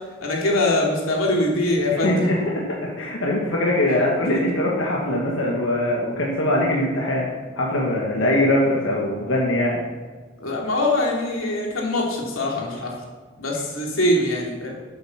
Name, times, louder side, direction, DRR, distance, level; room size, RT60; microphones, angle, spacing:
voice 1, 0.2-2.2 10.4-12.9 13.4-14.7, left 1 dB, 90° left, -1 dB, 2.7 m, -23 dB
voice 2, 2.0-2.4 3.0-7.3 7.6-9.8, left 1 dB, 70° left, -3 dB, 1.8 m, -22 dB
10.5 x 8.4 x 5.9 m, 1.4 s
head